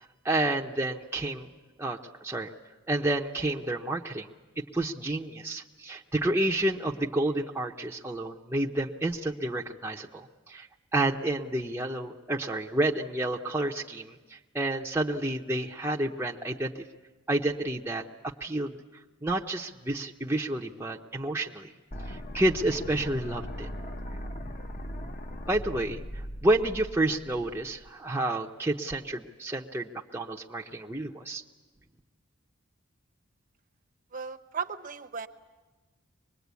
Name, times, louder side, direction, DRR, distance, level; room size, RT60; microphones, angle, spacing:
voice 1, 0.2-1.5 1.8-2.5 2.9-4.3 4.7-10.7 10.9-16.7 17.3-18.0 18.4-18.8 19.2-21.7 22.1-23.7 25.5-26.0 26.4-31.4, right 1 dB, 10° right, -2 dB, 0.8 m, -30 dB
sound 1, 21.9-27.9, equal, 40° left, 1.1 m, -39 dB
voice 2, 34.1-35.3, right 6 dB, 40° right, 6 dB, 0.9 m, -36 dB
24.0 x 21.0 x 8.2 m, 1.2 s
head